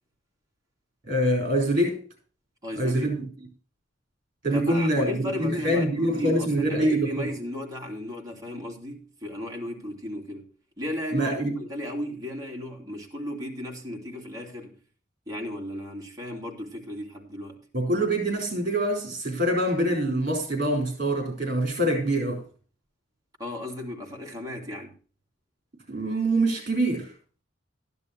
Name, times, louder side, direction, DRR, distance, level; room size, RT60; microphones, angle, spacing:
voice 1, 1.1-2.1 2.7-3.3 4.4-7.3 11.1-11.6 17.7-22.4 25.9-27.1, right 1 dB, 45° right, 4.4 m, -25 dB
voice 2, 2.6-3.2 4.5-10.5 10.8-14.8 15.3-17.7 23.4-25.0, left 1 dB, 20° right, 2.8 m, -35 dB
13.0 x 11.0 x 3.0 m
head